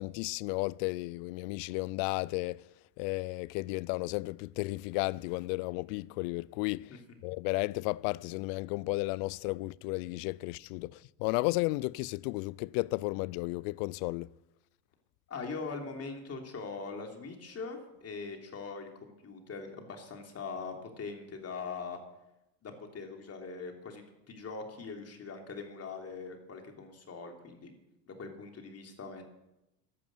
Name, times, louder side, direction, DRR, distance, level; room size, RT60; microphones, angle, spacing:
voice 1, 0.0-2.7 3.0-14.3, left 23 dB, 55° left, 0.5 m, -33 dB
voice 2, 15.3-22.0 22.6-27.7 28.1-29.2, left 4 dB, 30° left, 3.1 m, -42 dB
13.5 x 11.0 x 7.9 m
hypercardioid pair, 100°, 48 cm